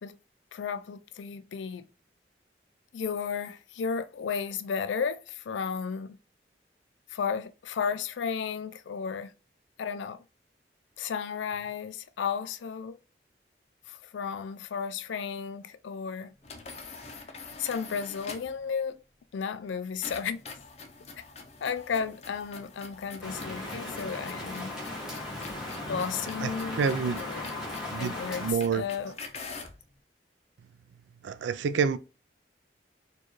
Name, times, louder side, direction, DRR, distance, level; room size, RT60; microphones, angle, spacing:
voice 1, 0.5-1.9 2.9-6.2 7.1-9.3 9.8-10.2 11.0-13.0 13.9-16.3 17.6-19.0 19.3-20.4 21.6-24.8 25.9-26.8 27.1-27.7 27.9-29.1, left 6 dB, 90° left, 0.4 m, -33 dB
sound 1, 16.4-18.6 20.0-29.8, left 4 dB, 35° left, 0.5 m, -46 dB
Rain, 23.2-28.5, left 2 dB, 5° right, 1.4 m, -37 dB
voice 2, 26.4-27.2 27.9-28.1 28.4-28.8 31.2-32.0, right 6 dB, 80° right, 0.3 m, -28 dB
4.4 x 2.3 x 3.1 m
head